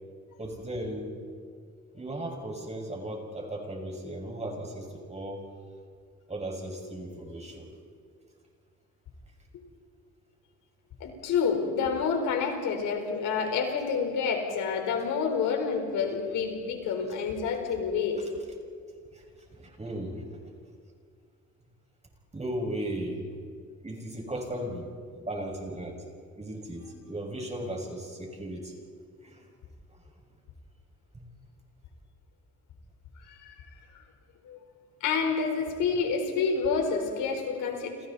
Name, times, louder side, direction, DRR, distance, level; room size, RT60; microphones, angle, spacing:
voice 1, 0.4-1.1 1.9-5.5 6.3-7.7 19.1-19.2 19.5-20.4 22.3-23.4 23.8-24.9 25.1-26.0 26.4-28.8 29.2-29.4 31.1-31.2 38.0-38.1, right 1 dB, 20° right, 1 dB, 6.3 m, -36 dB
voice 2, 11.0-18.2 33.2-33.6 34.4-34.6 35.0-38.1, left 5 dB, 90° left, 3 dB, 4.5 m, -28 dB
29.5 x 29.0 x 4.3 m, 2.2 s
cardioid pair, 90°, 30 cm